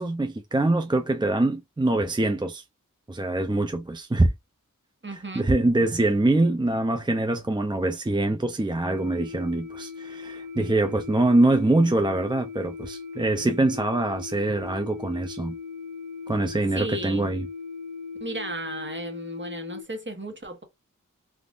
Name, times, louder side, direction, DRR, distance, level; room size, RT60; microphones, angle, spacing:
voice 1, 0.0-2.6 3.1-4.3 5.4-15.6 16.3-17.5, right 2 dB, 15° right, 0.4 m, -24 dB
voice 2, 5.0-5.5 16.7-17.3 18.2-20.6, right 2 dB, 35° right, 1.0 m, -35 dB
sound 1, 8.8-19.8, left 5 dB, 80° right, 0.6 m, -38 dB
3.5 x 2.4 x 2.4 m
wide cardioid pair, 45°, 32 cm